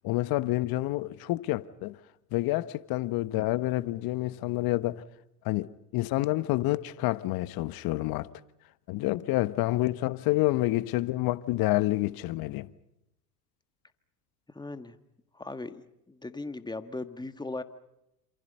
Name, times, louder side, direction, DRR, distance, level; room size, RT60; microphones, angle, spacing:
voice 1, 0.0-2.0 2.3-5.0 5.4-8.3 8.9-12.7, left 17 dB, 50° left, 1.2 m, -28 dB
voice 2, 14.5-15.0 15.3-17.6, left 2 dB, 10° left, 1.7 m, -38 dB
28.0 x 27.5 x 5.6 m
hypercardioid pair, 85°, 46 cm